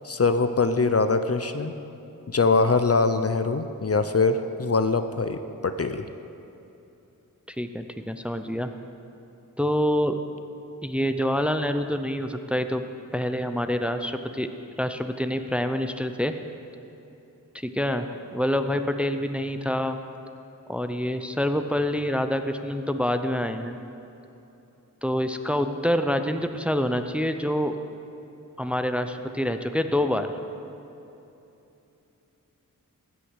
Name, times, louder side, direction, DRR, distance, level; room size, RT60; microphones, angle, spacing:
voice 1, 0.0-1.7 2.3-6.1, left 4 dB, 45° left, 9 dB, 0.6 m, -23 dB
voice 2, 7.5-8.7 9.6-10.2 10.8-12.8 13.1-14.5 14.8-16.3 17.5-20.0 20.7-23.8 25.0-27.8 28.6-30.3, equal, 5° right, 8 dB, 0.6 m, -26 dB
13.5 x 6.2 x 8.1 m, 2.9 s
wide cardioid pair, 50°, 35 cm